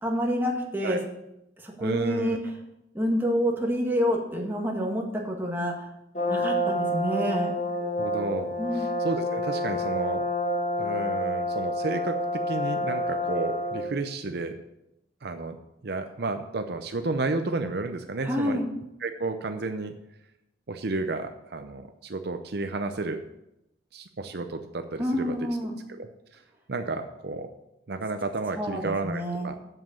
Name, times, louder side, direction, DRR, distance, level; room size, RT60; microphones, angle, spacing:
voice 1, 0.0-1.0 1.6-2.4 2.9-5.9 6.3-7.5 8.6-8.9 18.2-18.7 25.0-25.8 28.6-29.5, equal, 10° right, -1 dB, 1.8 m, -28 dB
voice 2, 1.8-2.4 7.8-10.2 10.8-14.6 15.2-15.6 15.8-18.6 19.0-20.0 20.7-23.2 23.9-25.3 26.0-26.4 26.7-27.5 27.9-29.6, right 3 dB, 60° right, 7 dB, 0.6 m, -32 dB
Brass instrument, 6.1-13.9, equal, 40° left, 1.8 m, -28 dB
8.0 x 7.5 x 7.2 m, 0.87 s
head